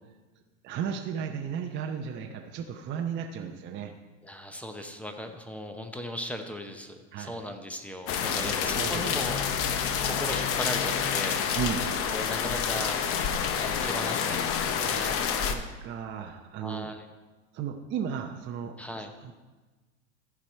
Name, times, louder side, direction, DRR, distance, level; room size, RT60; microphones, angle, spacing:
voice 1, 0.6-3.9 7.1-7.4 8.4-9.1 11.6-11.8 15.5-16.9 17.5-18.8 19.2-19.3, right 8 dB, 30° right, 2 dB, 0.7 m, -34 dB
voice 2, 4.2-11.4 12.1-12.9 13.6-15.2 16.6-17.1 18.8-19.1, left 1 dB, 5° left, 6 dB, 0.8 m, -37 dB
sound 1, 8.1-15.5, left 7 dB, 35° left, 0.8 m, -28 dB
14.5 x 4.9 x 4.4 m, 1.3 s
supercardioid pair, 120°, 37 cm